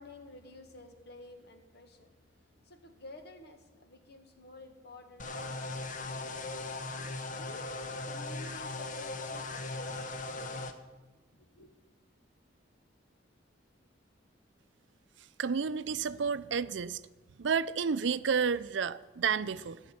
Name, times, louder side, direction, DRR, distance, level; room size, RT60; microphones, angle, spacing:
voice 1, 0.0-2.1 2.7-6.4 7.3-10.5 11.3-11.7, left 2 dB, 60° left, 1.8 m, -52 dB
sound 1, 5.2-10.7, left 2 dB, 45° left, 1.0 m, -38 dB
voice 2, 15.4-17.0 17.4-19.8, right 6 dB, 70° right, 0.5 m, -31 dB
13.0 x 7.3 x 9.6 m
head